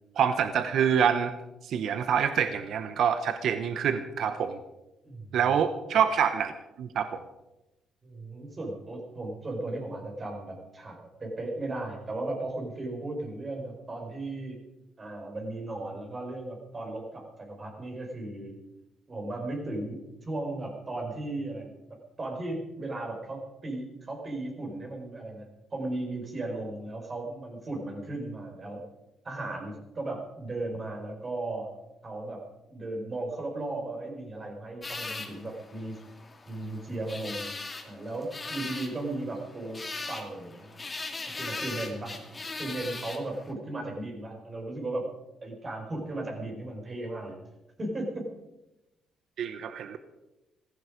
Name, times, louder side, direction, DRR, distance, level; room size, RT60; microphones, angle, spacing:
voice 1, 0.2-1.3 1.6-4.6 5.3-6.5 6.8-7.2 49.4-50.0, right 7 dB, 70° right, 10 dB, 0.9 m, -26 dB
voice 2, 5.0-5.4 8.0-14.6 15.0-18.5 19.1-21.7 22.2-28.8 29.2-31.7 32.0-32.4 32.7-36.0 36.5-37.5 37.8-40.8 41.3-42.1 42.6-45.1 45.4-47.4 47.8-48.3, right 2 dB, 35° right, 1 dB, 5.0 m, -36 dB
sound 1, 34.8-43.5, left 3 dB, 25° left, 2.5 m, -40 dB
15.5 x 15.0 x 5.1 m, 0.97 s
cardioid pair, 90°, 0 cm